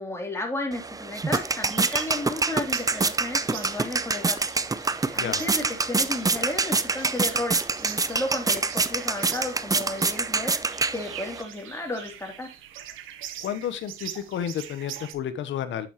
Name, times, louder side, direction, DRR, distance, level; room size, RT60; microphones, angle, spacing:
voice 1, 0.0-4.4 5.1-10.5 10.9-12.5, left 2 dB, 15° left, 3.0 m, -33 dB
sound 1, 0.7-11.4, right 3 dB, 20° right, 0.6 m, -26 dB
sound 2, 1.3-15.1, right 11 dB, 90° right, 1.1 m, -43 dB
voice 2, 5.1-5.5 13.4-15.9, left 9 dB, 70° left, 1.1 m, -31 dB
8.6 x 7.1 x 3.0 m
cardioid pair, 90°, 20 cm